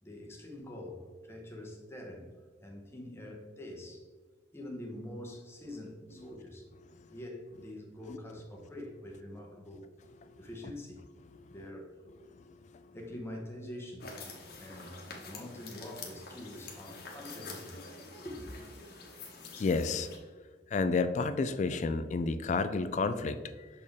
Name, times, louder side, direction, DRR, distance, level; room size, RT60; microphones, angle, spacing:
voice 1, 0.0-4.1 4.5-6.7 7.1-9.9 10.4-11.1 11.5-12.0 12.9-14.2 14.6-17.8 18.2-18.7, left 1 dB, 15° left, 1.0 m, -45 dB
voice 2, 12.3-13.0 14.5-14.6 19.6-20.1 20.7-23.7, left 4 dB, 40° left, 0.3 m, -31 dB
sound 1, 14.0-20.2, left 3 dB, 65° left, 1.2 m, -47 dB
6.5 x 4.3 x 3.5 m
head